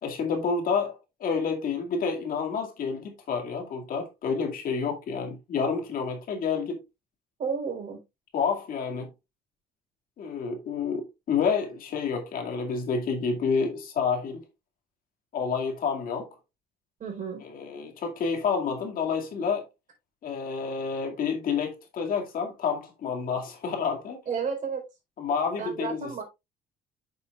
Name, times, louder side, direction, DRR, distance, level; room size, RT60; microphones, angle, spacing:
voice 1, 0.0-1.0 1.2-6.8 8.3-9.1 10.2-14.4 15.3-16.3 17.4-19.7 20.2-24.2 25.2-26.2, left 5 dB, 60° left, 2.3 m, -29 dB
voice 2, 7.4-8.0 17.0-17.4 24.3-24.8 25.6-26.2, right 6 dB, 50° right, 4.1 m, -32 dB
9.2 x 6.9 x 2.4 m
cardioid pair, 110°, 17 cm